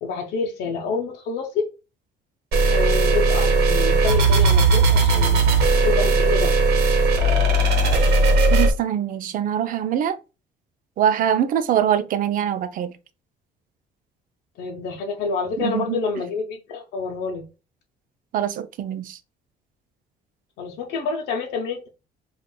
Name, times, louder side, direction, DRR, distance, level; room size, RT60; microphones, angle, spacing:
voice 1, 0.0-1.7 2.7-5.4 5.8-6.5 14.6-17.5 20.6-21.9, left 5 dB, 80° left, 0.6 m, -28 dB
sound 1, 2.5-8.7, right 2 dB, 75° right, 0.9 m, -17 dB
voice 2, 8.5-10.1 11.0-12.9 15.6-16.0 18.3-19.2, right 9 dB, 55° right, 0.5 m, -23 dB
5.2 x 2.4 x 2.2 m
cardioid pair, 110°, 17 cm